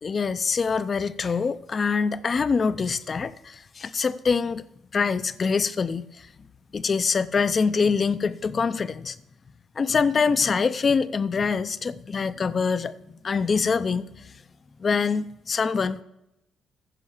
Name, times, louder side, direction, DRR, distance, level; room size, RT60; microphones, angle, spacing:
voice 1, 0.0-4.6 4.9-6.3 6.7-9.2 9.8-14.3 14.8-16.0, left 5 dB, 40° left, 15 dB, 0.6 m, -25 dB
15.0 x 5.5 x 7.2 m, 0.86 s
cardioid pair, 90°, 0 cm